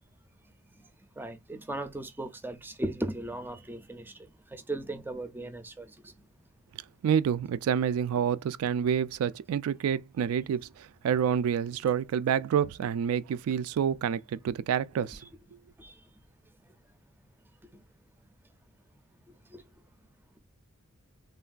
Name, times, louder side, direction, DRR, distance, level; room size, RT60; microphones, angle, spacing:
voice 1, 1.2-6.1 15.8-16.0 19.5-19.6, right 1 dB, 10° right, 0.4 m, -37 dB
voice 2, 7.0-15.2, right 8 dB, 90° right, 0.3 m, -28 dB
3.3 x 2.2 x 2.4 m
head